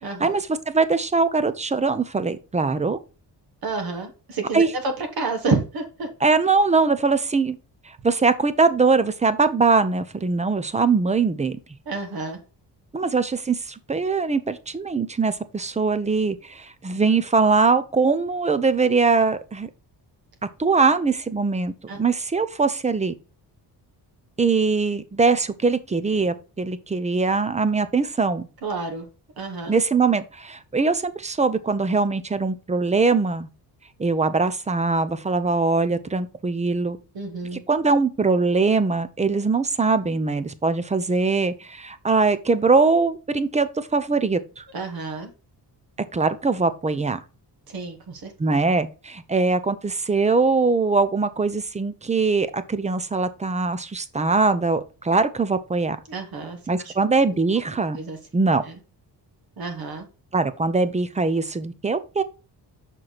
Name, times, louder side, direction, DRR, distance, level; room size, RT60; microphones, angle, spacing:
voice 1, 0.0-0.4 3.6-6.1 11.8-12.4 21.9-22.0 28.6-29.0 29.4-29.7 37.1-37.6 44.7-45.3 47.7-48.3 56.1-56.6 56.8-56.9 57.9-58.2 58.6-58.7 59.6-60.0, right 3 dB, 60° right, 1.4 m, -29 dB
voice 2, 0.7-3.0 4.5-4.7 6.2-7.6 8.0-11.6 12.9-19.7 20.6-21.7 22.0-23.1 24.4-28.4 29.7-33.5 34.0-37.0 37.7-44.6 46.1-47.2 48.4-56.0 56.7-58.0 58.3-58.6 60.3-62.2, right 4 dB, 20° right, 0.5 m, -22 dB
6.4 x 4.5 x 4.0 m
wide cardioid pair, 150°, 41 cm